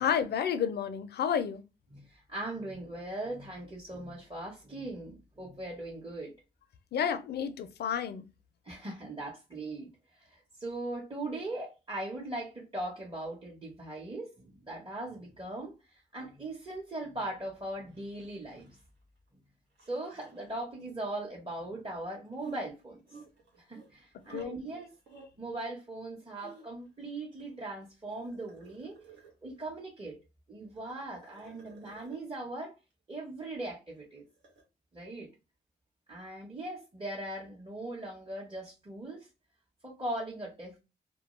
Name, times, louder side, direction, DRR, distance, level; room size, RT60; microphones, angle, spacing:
voice 1, 0.0-1.6 6.9-8.2 24.3-24.5, left 8 dB, 65° left, 0.4 m, -30 dB
voice 2, 1.9-6.3 8.6-9.9 10.2-18.7 19.9-23.2 23.7-24.9 25.4-29.0 29.4-30.2 30.5-32.7 33.1-34.2 34.9-35.3 36.1-39.3 39.8-40.8, right 2 dB, 30° right, 0.9 m, -39 dB
sound 1, 17.9-19.0 19.3-19.4 19.8-20.6 22.3-24.5 24.7-25.3 26.0-26.9 27.4-29.6 30.6-32.2 33.9-34.6, right 5 dB, 85° right, 0.9 m, -51 dB
2.2 x 2.2 x 3.0 m
supercardioid pair, 45°, 18 cm